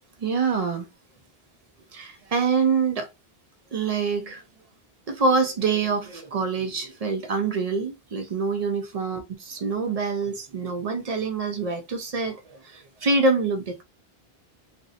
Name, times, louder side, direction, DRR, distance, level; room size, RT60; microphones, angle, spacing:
voice 1, 0.2-0.9 1.9-3.1 3.7-4.4 5.1-13.8, right 4 dB, 50° right, 0.5 m, -25 dB
2.5 x 2.0 x 2.5 m
omnidirectional pair, 1.0 m